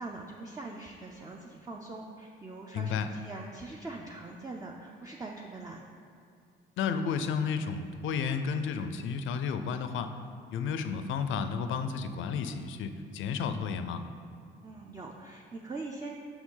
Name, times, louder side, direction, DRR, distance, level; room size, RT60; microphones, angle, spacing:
voice 1, 0.0-5.8 14.6-16.1, right 3 dB, 15° right, -1 dB, 0.5 m, -42 dB
voice 2, 2.7-3.1 6.8-10.1 10.5-14.0, left 6 dB, 75° left, 9 dB, 0.5 m, -32 dB
6.2 x 6.1 x 3.8 m, 2.4 s
cardioid pair, 90°, 20 cm